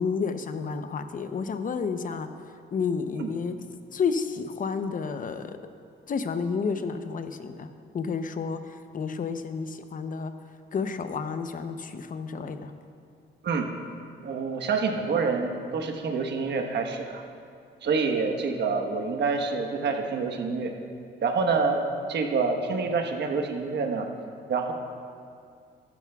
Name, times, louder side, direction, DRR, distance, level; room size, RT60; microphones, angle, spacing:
voice 1, 0.0-2.3 2.7-3.6 3.9-5.6 6.1-7.7 7.9-10.3 10.7-12.7, left 5 dB, 45° left, 9 dB, 0.7 m, -30 dB
voice 2, 14.2-17.2 17.8-20.7 21.2-24.1 24.5-24.7, right 4 dB, 60° right, 3 dB, 1.3 m, -27 dB
15.0 x 12.0 x 2.4 m, 2.4 s
cardioid pair, 90°, 20 cm